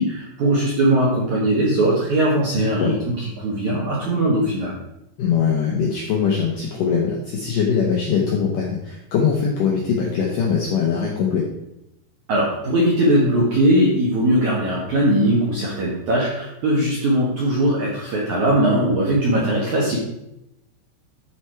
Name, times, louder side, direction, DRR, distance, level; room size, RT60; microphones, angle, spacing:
voice 1, 0.0-4.7 12.3-20.0, right 1 dB, 70° right, -4 dB, 1.8 m, -20 dB
voice 2, 2.5-2.9 5.2-11.4, left 6 dB, 90° left, -1 dB, 1.8 m, -21 dB
12.5 x 4.8 x 4.6 m, 0.85 s
omnidirectional pair, 5.6 m